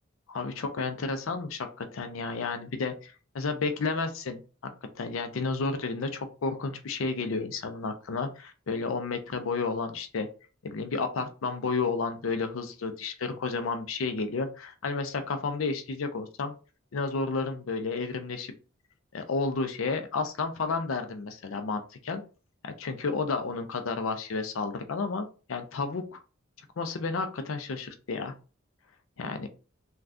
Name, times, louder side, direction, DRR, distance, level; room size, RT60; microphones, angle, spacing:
voice 1, 0.3-4.4 5.0-10.3 10.6-16.5 16.9-18.5 19.1-22.2 22.6-26.2 26.8-28.3 29.2-29.5, left 4 dB, 80° left, 7 dB, 0.5 m, -31 dB
3.4 x 2.3 x 2.5 m, 0.34 s
head